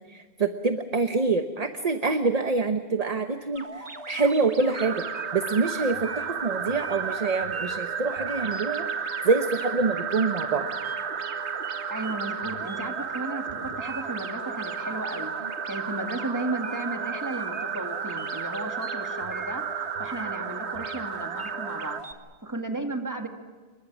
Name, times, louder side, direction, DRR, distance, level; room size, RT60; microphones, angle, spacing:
voice 1, 0.1-5.0 5.3-8.8 9.2-10.7, right 4 dB, 40° right, 7 dB, 1.0 m, -26 dB
sound 1, 3.6-22.1, right 1 dB, 65° right, 2.1 m, -41 dB
sound 2, 4.7-22.0, right 7 dB, 90° right, 1.2 m, -33 dB
voice 2, 11.9-15.3 15.7-22.0 22.4-23.3, right 2 dB, 15° right, 4 dB, 2.1 m, -34 dB
28.0 x 23.0 x 6.2 m, 1.4 s
omnidirectional pair, 1.1 m